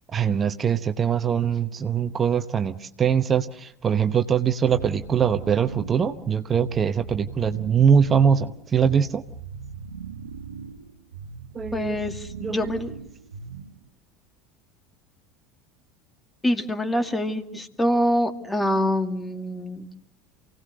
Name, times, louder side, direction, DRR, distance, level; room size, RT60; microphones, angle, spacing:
voice 1, 0.1-9.2 11.5-12.0 12.4-12.7, right 7 dB, 30° right, 9 dB, 1.0 m, -22 dB
sound 1, 4.7-13.9, right 5 dB, 80° right, 1.0 m, -39 dB
voice 2, 11.7-12.9 16.4-19.9, left 1 dB, 15° left, 7 dB, 2.3 m, -25 dB
28.5 x 18.0 x 6.7 m, 0.73 s
figure-of-eight pair, 75°, 0 cm